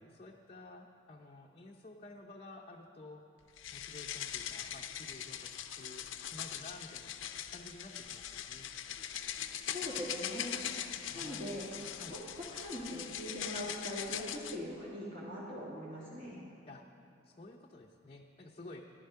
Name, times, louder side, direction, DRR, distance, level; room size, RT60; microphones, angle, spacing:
voice 1, 0.0-3.2 3.7-7.2 7.5-8.7 11.1-12.2 16.6-16.8 17.2-18.8, left 2 dB, 30° left, -1 dB, 0.7 m, -52 dB
sound 1, 3.6-14.6, left 10 dB, 85° left, 0.6 m, -41 dB
voice 2, 9.7-10.6 11.1-11.7 12.1-16.4, equal, 45° right, -9 dB, 2.2 m, -41 dB
14.0 x 11.0 x 5.6 m, 2.8 s
head